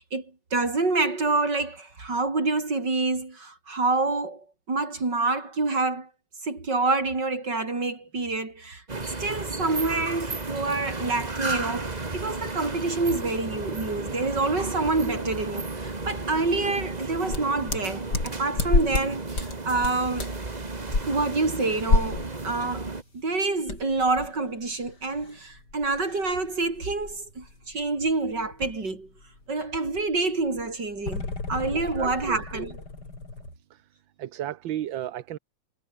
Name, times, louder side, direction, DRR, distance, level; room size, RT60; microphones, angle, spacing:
voice 1, 0.0-6.1 6.4-20.3 21.1-22.9 23.1-29.1 29.5-32.8, right 3 dB, 60° right, 5.6 m, -27 dB
sound 1, 8.9-23.0, right 3 dB, 20° right, 1.9 m, -33 dB
sound 2, 17.3-19.1 19.3-19.6 19.8-20.4 20.9-21.0 21.9-22.3 22.7-22.8 23.7-28.9 29.2-29.4 29.7-33.5, left 3 dB, 55° left, 5.1 m, -30 dB
voice 2, 32.0-32.4 34.2-35.4, right 12 dB, 80° right, 1.7 m, -33 dB
omnidirectional pair, 2.1 m